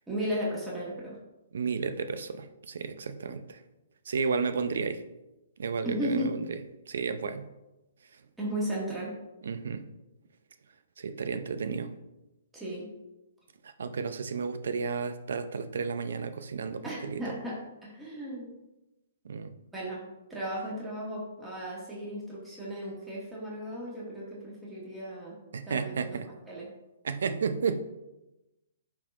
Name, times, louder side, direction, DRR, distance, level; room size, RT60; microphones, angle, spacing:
voice 1, 0.1-1.2 5.8-6.3 8.4-9.1 12.5-12.9 16.8-18.5 19.7-20.0 20.3-25.4 25.7-26.2 26.5-26.7, equal, 10° right, -6 dB, 1.6 m, -35 dB
voice 2, 1.5-3.6 4.1-5.0 5.6-6.6 6.9-7.5 9.4-9.8 11.0-11.9 13.8-16.8 17.1-17.2 19.2-19.5 25.5-26.3 27.0-27.8, right 5 dB, 75° right, 11 dB, 0.5 m, -32 dB
10.5 x 3.7 x 2.5 m, 1.0 s
hypercardioid pair, 135°, 0 cm